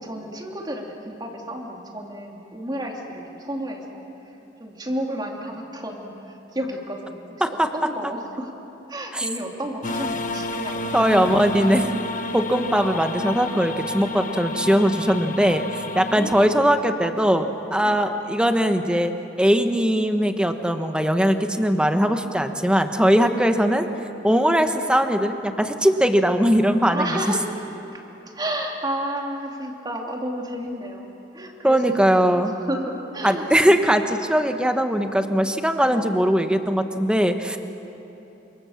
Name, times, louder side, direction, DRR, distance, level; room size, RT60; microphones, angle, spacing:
voice 1, 0.0-4.1 4.6-8.5 8.9-11.7 12.4-12.5 16.0-16.7 17.8-18.1 23.3-23.4 26.8-27.5 27.9-31.1 31.3-33.8 35.8-36.1, right 1 dB, 20° right, 1 dB, 2.9 m, -32 dB
sound 1, 9.8-16.5, left 2 dB, 45° left, 1.4 m, -30 dB
voice 2, 10.9-11.9 12.3-19.1 19.4-23.8 24.2-27.1 31.6-32.5 33.2-37.6, equal, 5° right, 6 dB, 1.2 m, -20 dB
29.0 x 26.5 x 7.3 m, 3.0 s
head